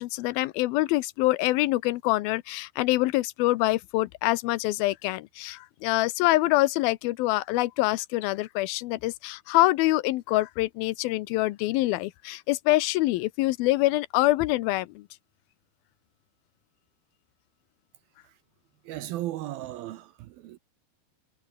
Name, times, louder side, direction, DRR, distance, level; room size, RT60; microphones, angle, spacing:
voice 1, 0.0-15.0, left 18 dB, 80° left, 2.2 m, -25 dB
voice 2, 18.8-20.6, right 14 dB, 75° right, 2.4 m, -36 dB
omnidirectional pair, 5.0 m